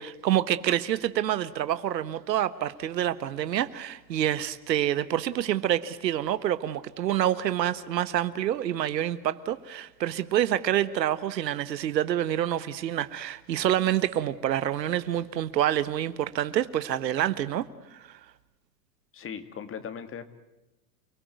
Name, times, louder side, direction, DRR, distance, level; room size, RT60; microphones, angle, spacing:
voice 1, 0.0-17.7, right 11 dB, 80° right, 14 dB, 1.5 m, -27 dB
voice 2, 19.1-20.3, left 7 dB, 25° left, 11 dB, 2.4 m, -38 dB
29.5 x 18.5 x 9.3 m, 0.97 s
hypercardioid pair, 110°, 50 cm